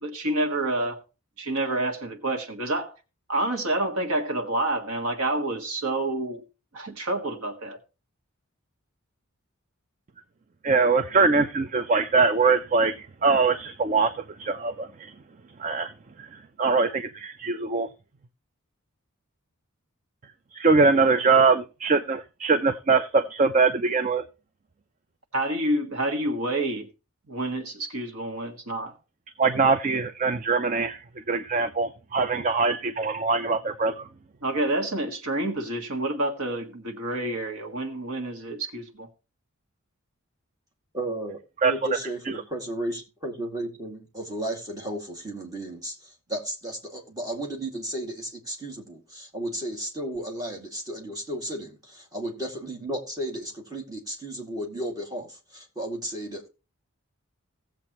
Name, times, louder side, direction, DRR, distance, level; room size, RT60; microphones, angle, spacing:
voice 1, 0.0-1.0 1.4-2.9 3.3-6.4 6.7-7.8 25.3-26.9 27.3-28.9 34.4-39.1, right 1 dB, 90° right, 1.8 m, -28 dB
voice 2, 10.6-15.1 15.6-15.9 16.2-17.9 20.5-24.3 29.4-34.1 41.6-41.7 42.3-42.4, right 4 dB, 35° right, 0.4 m, -23 dB
voice 3, 40.9-56.5, right 1 dB, 15° right, 2.0 m, -34 dB
17.0 x 7.5 x 3.0 m
head